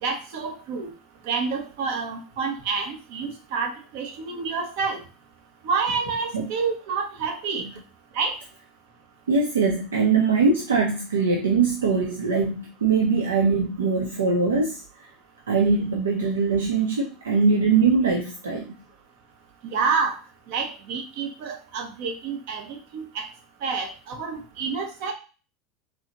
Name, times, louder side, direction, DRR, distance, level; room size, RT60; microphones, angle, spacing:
voice 1, 0.0-0.9 1.3-5.0 5.6-7.6 8.1-8.3 19.6-20.2 20.5-23.3 23.6-25.1, right 5 dB, 55° right, 2 dB, 0.9 m, -28 dB
voice 2, 9.3-14.8 15.5-18.7, right 4 dB, 75° right, 1 dB, 0.5 m, -22 dB
4.0 x 2.9 x 2.9 m, 0.35 s
figure-of-eight pair, 75°, 0 cm